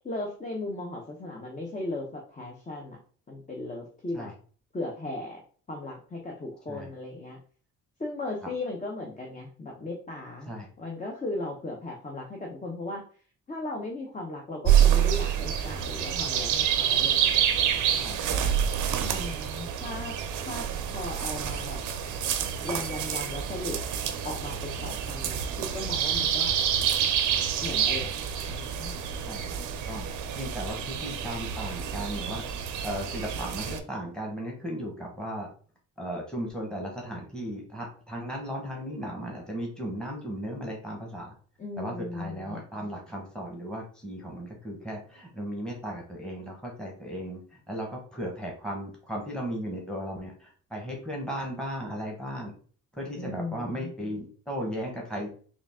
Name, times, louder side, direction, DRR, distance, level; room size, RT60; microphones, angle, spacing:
voice 1, 0.0-3.0 3.3-4.3 4.7-5.4 5.7-7.4 8.0-10.5 10.8-13.0 13.5-17.4 19.0-20.2 20.4-20.6 20.9-21.8 22.6-23.8 24.2-26.5 27.6-28.1 28.5-28.9 41.6-42.6 53.2-53.9, left 2 dB, 25° left, 0 dB, 0.8 m, -37 dB
sound 1, 14.6-33.8, right 9 dB, 80° right, 0.6 m, -27 dB
voice 2, 30.4-32.4 32.8-35.5 36.0-41.2 41.8-47.4 47.7-50.3 50.7-52.5 53.0-55.3, equal, 5° left, -1 dB, 1.2 m, -36 dB
3.9 x 2.4 x 3.5 m, 0.44 s
cardioid pair, 90°, 30 cm